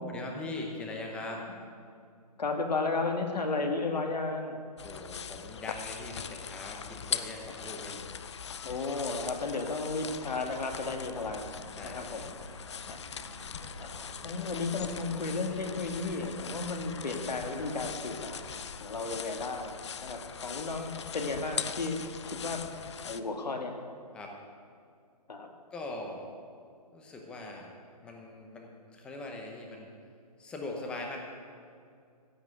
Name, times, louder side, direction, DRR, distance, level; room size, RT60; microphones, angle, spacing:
voice 1, 0.1-1.5 4.8-8.0 11.7-12.3 24.1-24.3 25.7-26.2 26.9-27.7 28.0-29.9 30.4-31.2, left 2 dB, 5° left, 1 dB, 0.8 m, -41 dB
voice 2, 2.4-4.6 8.6-11.5 11.8-12.6 12.9-13.0 13.8-19.7 20.0-23.8 25.3-25.5, left 3 dB, 80° left, 4 dB, 2.0 m, -34 dB
sound 1, 4.8-23.2, left 7 dB, 45° left, 0.5 m, -41 dB
Subway metro underground, 11.1-18.6, right 1 dB, 65° right, 3.6 m, -51 dB
15.5 x 5.9 x 9.1 m, 2.3 s
hypercardioid pair, 165°, 21 cm